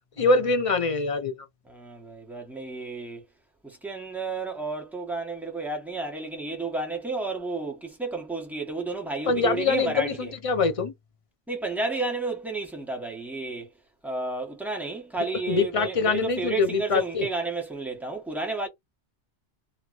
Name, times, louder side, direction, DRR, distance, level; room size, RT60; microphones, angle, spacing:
voice 1, 0.2-1.4 9.3-10.9 15.5-17.3, left 4 dB, 45° left, 0.5 m, -24 dB
voice 2, 1.7-3.2 3.6-10.3 11.5-13.7 14.0-18.7, right 3 dB, ahead, 1.0 m, -32 dB
2.9 x 2.8 x 2.4 m
omnidirectional pair, 1.1 m